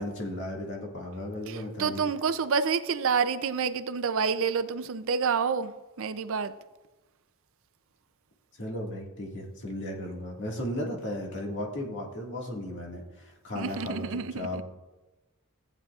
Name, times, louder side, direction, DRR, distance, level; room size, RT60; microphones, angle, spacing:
voice 1, 0.0-2.0 8.6-14.6, left 1 dB, 55° left, -1 dB, 1.9 m, -35 dB
voice 2, 1.5-5.7 6.0-6.5 13.5-14.6, right 6 dB, 60° right, 12 dB, 0.5 m, -28 dB
15.0 x 8.7 x 2.4 m, 1.1 s
head